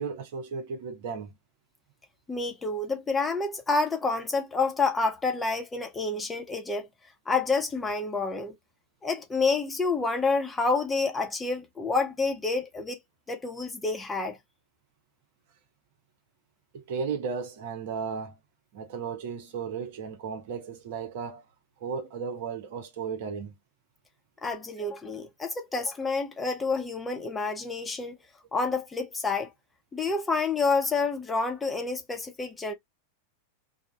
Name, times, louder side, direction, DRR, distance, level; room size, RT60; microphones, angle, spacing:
voice 1, 0.0-1.3 16.7-18.3 18.7-21.4 21.8-23.5, right 5 dB, 50° right, 0.7 m, -35 dB
voice 2, 2.3-6.9 7.3-8.5 9.0-13.0 13.3-14.4 24.4-28.2 28.5-29.5 29.9-32.7, left 4 dB, 10° left, 0.8 m, -28 dB
2.4 x 2.1 x 3.5 m
figure-of-eight pair, 90°, 0 cm